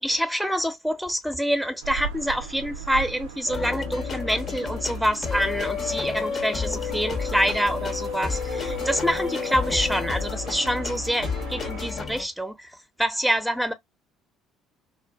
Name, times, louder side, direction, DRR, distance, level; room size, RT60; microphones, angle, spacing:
voice 1, 0.0-13.7, equal, ahead, 0.8 m, -26 dB
sound 1, 1.8-11.9, right 7 dB, 85° right, 0.5 m, -39 dB
sound 2, 3.5-12.3, left 6 dB, 45° left, 0.8 m, -30 dB
2.5 x 2.4 x 2.3 m
hypercardioid pair, 55°, 0 cm